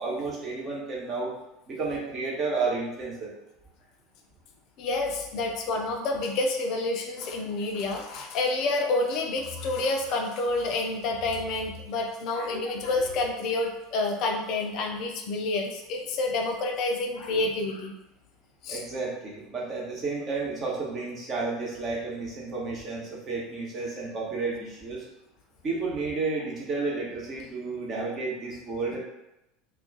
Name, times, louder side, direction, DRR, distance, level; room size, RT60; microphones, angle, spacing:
voice 1, 0.0-1.3 1.7-3.3 18.7-25.0 25.6-29.0, right 3 dB, 35° right, -3 dB, 0.9 m, -31 dB
voice 2, 4.8-17.9 18.6-18.8, left 2 dB, 50° left, 1 dB, 0.4 m, -28 dB
2.3 x 2.2 x 3.8 m, 0.89 s
figure-of-eight pair, 75°, 0 cm